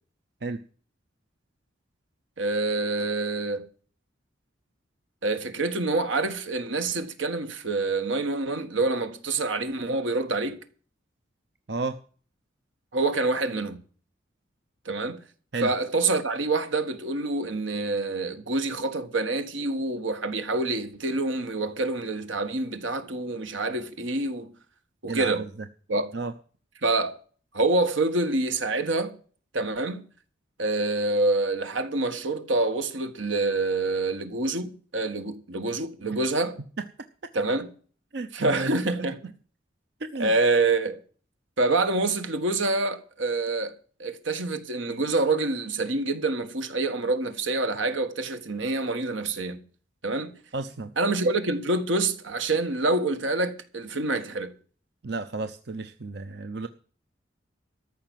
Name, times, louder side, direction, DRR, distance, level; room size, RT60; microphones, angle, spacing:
voice 1, 2.4-3.6 5.2-10.6 12.9-13.8 14.8-15.2 15.6-24.5 25.0-25.5 25.9-26.1 26.8-27.2 27.5-29.1 29.5-30.0 30.6-36.6 37.3-37.7 38.3-39.2 40.2-41.0 41.6-49.6 50.0-50.3 51.0-54.5, right 2 dB, 80° right, 1.6 m, -26 dB
voice 2, 11.7-12.0 15.5-15.7 25.1-25.5 26.1-26.3 37.2-37.3 38.1-38.7 40.0-40.3 50.5-50.9 55.0-56.7, right 3 dB, 55° right, 0.7 m, -32 dB
14.0 x 5.9 x 9.1 m
head